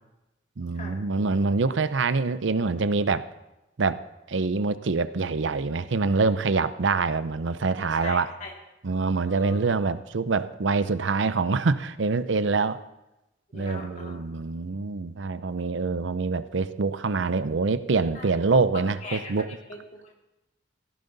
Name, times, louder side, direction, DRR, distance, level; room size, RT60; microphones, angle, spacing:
voice 1, 0.6-3.3 3.8-4.0 4.3-8.3 8.8-12.8 13.5-19.6, right 4 dB, 80° right, 13 dB, 0.6 m, -25 dB
voice 2, 7.8-8.5 9.2-9.6 13.5-14.2 18.1-18.3 18.7-19.3 19.7-20.2, left 3 dB, 40° left, 0 dB, 2.6 m, -40 dB
17.0 x 14.5 x 4.0 m, 0.96 s
head